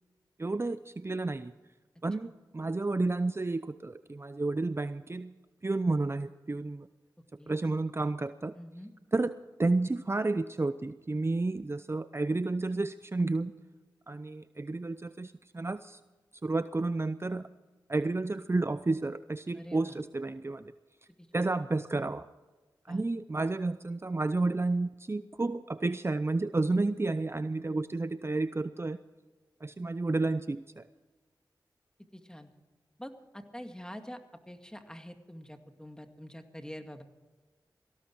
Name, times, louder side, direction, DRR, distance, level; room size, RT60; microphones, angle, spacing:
voice 1, 0.4-1.5 2.0-5.4 5.6-6.9 7.3-8.6 9.1-13.5 14.1-16.0 16.4-17.5 17.9-20.6 21.3-22.3 22.9-29.0 29.6-30.8, right 2 dB, 30° right, 13 dB, 0.6 m, -31 dB
voice 2, 8.5-8.9 19.5-20.0 21.2-21.5 22.9-23.0 32.1-32.5 33.0-34.2 34.5-37.0, equal, 10° left, 6 dB, 2.2 m, -46 dB
18.5 x 16.0 x 4.6 m, 1.3 s
cardioid pair, 40°, 8 cm